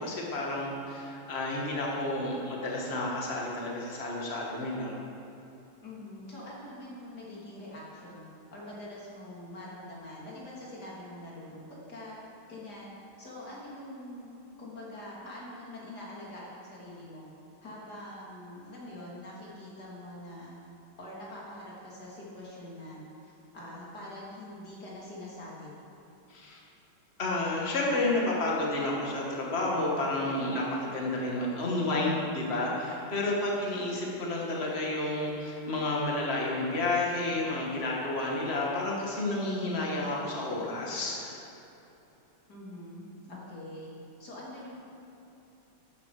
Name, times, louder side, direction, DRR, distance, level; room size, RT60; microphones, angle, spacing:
voice 1, 0.0-5.0 26.3-26.6 27.2-41.4, left 2 dB, 30° left, -3 dB, 2.2 m, -31 dB
voice 2, 5.8-8.2 8.5-11.6 11.9-12.2 12.5-12.9 13.2-14.3 14.6-17.3 17.6-20.5 21.0-25.7 42.5-43.9 44.2-44.8, left 1 dB, 50° left, -6 dB, 3.8 m, -44 dB
13.5 x 11.5 x 5.1 m, 3.0 s
omnidirectional pair, 2.2 m